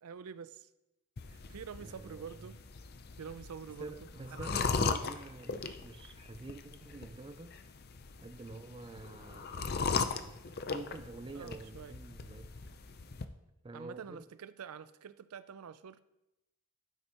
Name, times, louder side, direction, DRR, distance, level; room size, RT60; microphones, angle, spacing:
voice 1, 0.0-0.7 1.3-2.6 3.1-3.9 4.3-5.1 11.3-11.9 13.7-16.0, right 6 dB, 80° right, 0.5 m, -47 dB
sound 1, 1.2-13.3, left 5 dB, 45° left, 0.5 m, -38 dB
voice 2, 1.8-2.3 3.8-7.6 8.2-12.5 13.6-14.2, right 2 dB, 20° right, 0.3 m, -47 dB
12.0 x 9.7 x 3.0 m
head